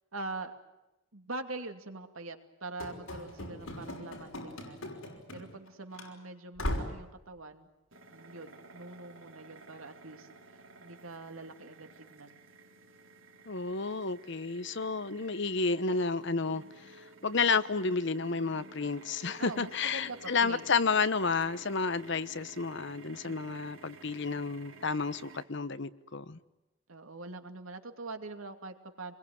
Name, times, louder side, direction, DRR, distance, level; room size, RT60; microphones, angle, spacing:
voice 1, 0.1-0.5 1.1-4.9 5.3-7.7 8.1-10.3 10.8-12.4 19.4-20.7 23.2-23.6 26.9-29.1, right 2 dB, 90° right, 6 dB, 2.6 m, -43 dB
Run / Slam, 2.8-5.7 5.9-6.1 6.6-7.1, left 1 dB, 80° left, 5.7 m, -38 dB
sound 1, 7.9-25.4, right 3 dB, 70° right, 4.5 m, -53 dB
voice 2, 13.5-17.0 17.2-26.4, left 4 dB, 60° left, 14 dB, 1.0 m, -31 dB
26.5 x 21.5 x 9.5 m, 0.98 s
head